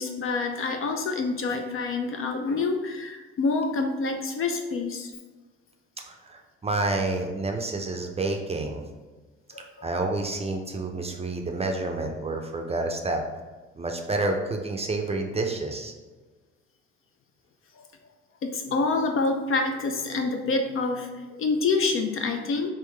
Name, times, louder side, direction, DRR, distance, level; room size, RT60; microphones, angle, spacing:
voice 1, 0.0-5.1 9.5-9.9 17.8-17.9 18.4-22.7, left 3 dB, 40° left, 5 dB, 0.4 m, -27 dB
voice 2, 6.1-8.8 9.8-13.2 13.8-15.9, right 2 dB, 20° right, 3 dB, 0.5 m, -29 dB
3.6 x 2.7 x 3.2 m, 1.3 s
hypercardioid pair, 65°, 33 cm